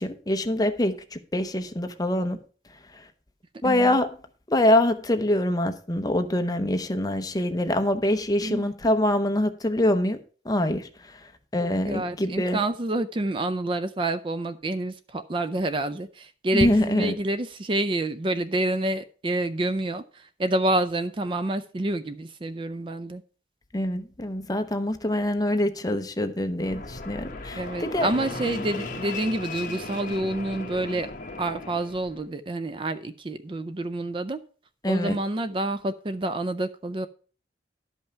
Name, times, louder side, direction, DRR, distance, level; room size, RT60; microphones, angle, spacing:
voice 1, 0.0-2.4 2.9-3.0 3.6-4.1 4.5-10.2 10.4-11.2 11.5-12.6 16.5-17.1 23.7-28.1 34.8-35.2, left 1 dB, 20° left, 7 dB, 0.8 m, -24 dB
voice 2, 3.6-4.0 8.4-8.7 11.6-23.2 27.6-31.1 31.4-34.4 34.9-37.1, right 1 dB, 30° right, 12 dB, 0.4 m, -28 dB
Fixed-wing aircraft airplane, 26.6-32.2, left 3 dB, 45° left, 1.1 m, -36 dB
11.5 x 5.5 x 5.6 m, 0.40 s
head